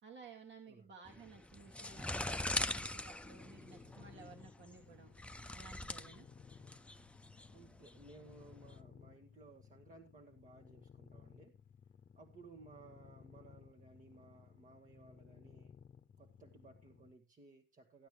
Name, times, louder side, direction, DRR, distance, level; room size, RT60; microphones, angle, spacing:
voice 1, 0.0-5.1 5.5-6.3, right 5 dB, 65° right, 1 dB, 2.2 m, -56 dB
sound 1, 1.1-8.7, left 1 dB, 5° left, 0.5 m, -42 dB
sound 2, 3.3-17.2, left 7 dB, 45° left, 0.7 m, -60 dB
voice 2, 7.5-11.6 12.2-15.8 16.2-18.1, right 3 dB, 40° right, 3 dB, 1.3 m, -59 dB
14.5 x 9.3 x 3.2 m, 0.25 s
cardioid pair, 90°, 20 cm